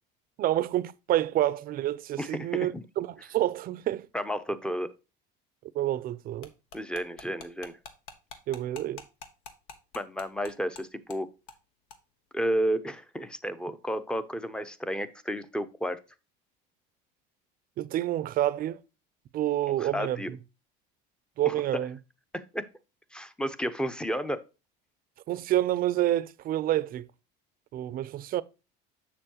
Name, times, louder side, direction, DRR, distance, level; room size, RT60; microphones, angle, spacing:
voice 1, 0.4-4.1 5.7-6.5 8.5-9.0 17.8-18.8 19.3-20.4 21.4-22.0 25.3-27.1 27.7-28.4, right 13 dB, 45° right, 0.6 m, -28 dB
voice 2, 2.2-2.8 4.1-4.9 6.7-7.8 9.9-11.3 12.3-16.0 19.8-20.3 21.4-21.5 22.3-22.7 23.1-24.4, equal, 5° left, 0.7 m, -32 dB
sound 1, 6.4-10.8 11.1-11.2 11.5-11.6 11.9-12.0, left 5 dB, 75° left, 1.3 m, -45 dB
7.1 x 6.9 x 2.9 m
supercardioid pair, 115°, 21 cm